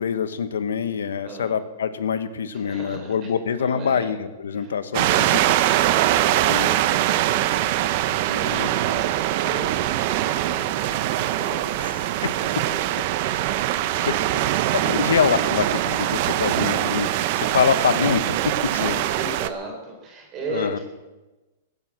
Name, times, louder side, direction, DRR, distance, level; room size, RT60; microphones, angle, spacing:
voice 1, 0.0-5.3 6.5-6.7 8.5-8.7 12.2-12.3 14.0-14.2 14.7-17.1 17.3-19.0 20.5-20.8, left 7 dB, 85° left, 12 dB, 1.2 m, -25 dB
voice 2, 2.5-4.1 4.5-6.9 7.2-13.0 13.9-14.5 18.7-20.8, right 2 dB, 35° right, 1 dB, 4.0 m, -37 dB
sound 1, 4.9-19.5, right 13 dB, 55° right, 0.9 m, -23 dB
16.0 x 9.5 x 7.2 m, 1.1 s
hypercardioid pair, 125°, 0 cm